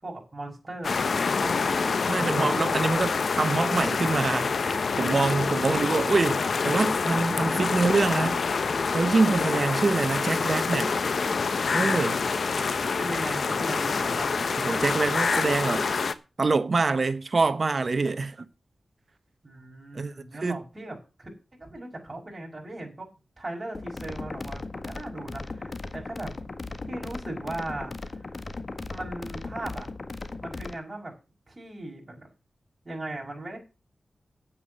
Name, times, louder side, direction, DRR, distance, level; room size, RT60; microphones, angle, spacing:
voice 1, 0.0-1.8 6.3-6.8 12.4-12.5 13.0-14.4 19.4-23.1 23.4-26.3 26.9-28.3 28.9-29.9 30.4-31.1 31.5-32.3 32.8-33.6, right 2 dB, 30° right, 5.9 m, -38 dB
sound 1, 0.8-16.1, left 5 dB, 70° left, 1.0 m, -26 dB
voice 2, 2.1-8.4 8.9-10.9 11.7-12.2 14.6-15.9 16.4-18.4 19.9-20.1 20.4-20.6, right 3 dB, 50° right, 1.2 m, -25 dB
sound 2, 23.7-30.8, left 3 dB, 45° left, 1.6 m, -37 dB
9.4 x 8.7 x 7.7 m
cardioid pair, 65°, 0 cm